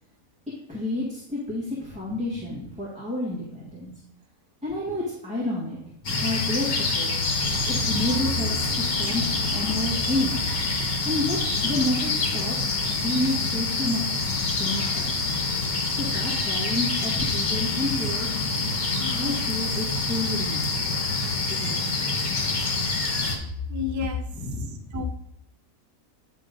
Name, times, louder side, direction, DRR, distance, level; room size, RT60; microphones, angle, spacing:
voice 1, 0.7-3.9 4.6-7.1 7.7-10.4 11.0-11.4 11.6-12.6 12.9-15.3 15.9-18.7 19.1-21.0 21.5-22.7 24.3-24.9, left 2 dB, 5° right, -8 dB, 1.9 m, -30 dB
sound 1, 6.0-23.4, left 3 dB, 85° left, 2.0 m, -26 dB
sound 2, 7.2-11.5 12.0-12.1, right 5 dB, 55° right, 0.7 m, -37 dB
voice 2, 19.0-19.4 23.7-24.3 24.9-25.0, left 4 dB, 25° right, 4 dB, 0.3 m, -30 dB
9.7 x 3.7 x 5.2 m, 0.75 s
omnidirectional pair, 1.5 m